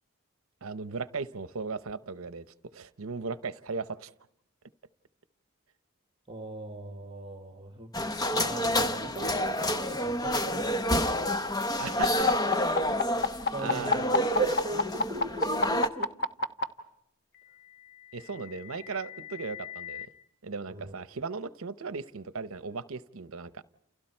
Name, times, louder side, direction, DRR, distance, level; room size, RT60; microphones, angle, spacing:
voice 1, 0.6-2.4 2.7-4.1 11.8-12.3 13.6-14.3 18.1-20.1 20.4-23.6, right 4 dB, 70° right, 14 dB, 0.8 m, -37 dB
voice 2, 6.3-7.9 8.3-10.7 13.5-16.1 20.7-20.9, right 2 dB, 25° right, 5 dB, 1.6 m, -37 dB
sound 1, 7.9-15.9, equal, 20° left, 0.9 m, -29 dB
sound 2, 12.0-16.6 17.8-20.1, left 3 dB, 50° left, 1.2 m, -29 dB
29.5 x 29.0 x 4.5 m, 0.78 s
head